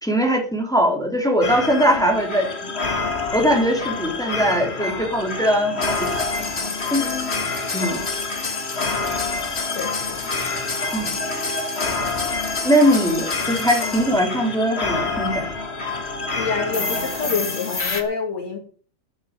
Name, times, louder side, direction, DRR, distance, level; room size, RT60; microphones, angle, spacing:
voice 1, 0.0-2.5 3.3-6.0 6.9-7.1 7.7-8.0 10.9-11.1 12.6-15.5, equal, ahead, 2 dB, 3.2 m, -20 dB
sound 1, 1.4-18.0, left 3 dB, 30° left, 1.4 m, -26 dB
voice 2, 7.0-7.3 9.8-10.3 13.8-14.0 16.3-18.6, left 5 dB, 65° left, 2 dB, 3.7 m, -28 dB
9.3 x 8.6 x 8.9 m, 0.43 s
omnidirectional pair, 3.4 m